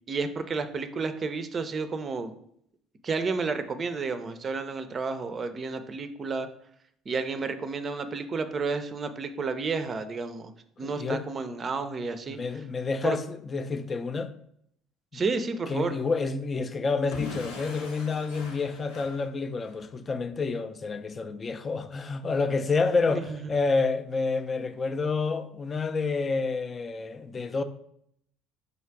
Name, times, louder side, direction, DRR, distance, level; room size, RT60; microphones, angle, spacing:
voice 1, 0.1-2.3 3.0-6.5 7.1-10.5 10.8-12.4 13.0-13.2 15.1-15.9 23.1-23.4, right 4 dB, 35° right, 0.5 m, -31 dB
voice 2, 10.8-11.2 12.3-14.3 15.1-15.2 15.7-27.6, left 4 dB, 35° left, 0.4 m, -29 dB
Explosion / Shatter, 17.1-19.9, left 3 dB, 85° left, 0.9 m, -41 dB
3.9 x 2.4 x 4.5 m
hypercardioid pair, 65°, 0 cm